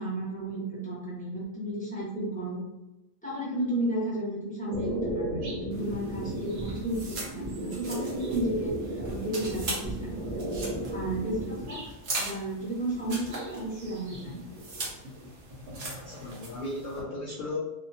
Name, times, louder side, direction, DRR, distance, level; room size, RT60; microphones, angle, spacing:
voice 1, 0.0-2.6 3.2-10.5 10.9-11.8 12.2-14.4, right 1 dB, 5° left, -8 dB, 1.0 m, -33 dB
sound 1, 4.7-11.9 12.9-14.2 14.5-15.5, right 1 dB, 40° right, 0.6 m, -35 dB
sound 2, 5.7-17.0, right 2 dB, 55° right, 1.0 m, -40 dB
voice 2, 15.9-17.6, left 1 dB, 80° left, -3 dB, 0.4 m, -36 dB
2.7 x 2.4 x 2.7 m, 0.96 s
omnidirectional pair, 1.4 m